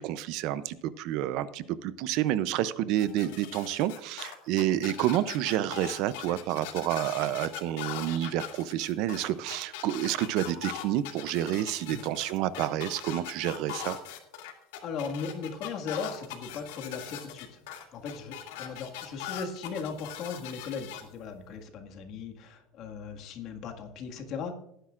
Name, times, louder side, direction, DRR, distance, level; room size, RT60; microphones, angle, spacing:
voice 1, 0.0-14.0, right 12 dB, 55° right, 15 dB, 0.5 m, -29 dB
sound 1, 3.0-21.0, left 10 dB, 85° left, 2.3 m, -41 dB
voice 2, 14.8-17.6 17.9-24.5, left 5 dB, 45° left, 4 dB, 1.8 m, -38 dB
18.0 x 10.0 x 2.5 m, 0.77 s
cardioid pair, 160°, 0 cm